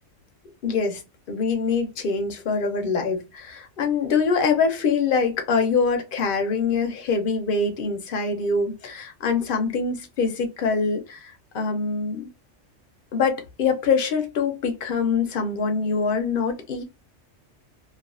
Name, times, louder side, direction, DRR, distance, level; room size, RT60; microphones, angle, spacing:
voice 1, 0.6-1.0 1.3-12.3 13.1-16.8, left 5 dB, 55° left, 0.8 m, -24 dB
2.4 x 2.3 x 2.4 m
omnidirectional pair, 1.2 m